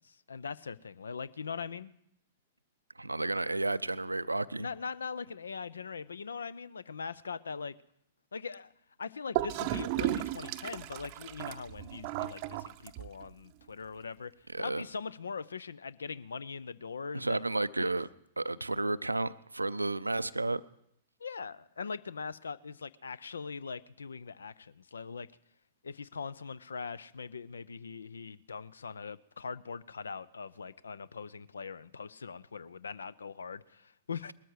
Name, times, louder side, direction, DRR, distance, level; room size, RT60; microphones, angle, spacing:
voice 1, 0.0-1.9 4.6-7.7 8.3-8.7 9.0-14.3 14.6-17.4 17.8-17.9 21.2-25.3 25.8-34.3, left 5 dB, 70° left, 0.5 m, -41 dB
voice 2, 3.0-4.7 14.5-14.8 17.1-18.1 18.4-20.6, right 2 dB, 85° right, 0.5 m, -32 dB
Gurgling / Toilet flush, 9.3-13.3, right 15 dB, 40° right, 0.6 m, -35 dB
20.0 x 13.0 x 4.8 m
figure-of-eight pair, 105°, 0 cm